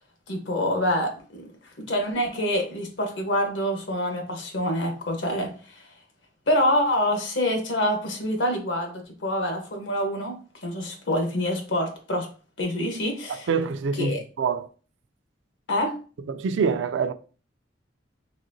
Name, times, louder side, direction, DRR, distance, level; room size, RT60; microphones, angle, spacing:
voice 1, 0.3-1.5 1.8-5.8 6.5-12.3 12.6-13.5 14.0-14.2 15.7-16.0, left 1 dB, 75° left, 1.1 m, -26 dB
voice 2, 13.3-14.7 16.3-17.1, right 5 dB, 75° right, 0.4 m, -26 dB
4.0 x 3.4 x 2.7 m
head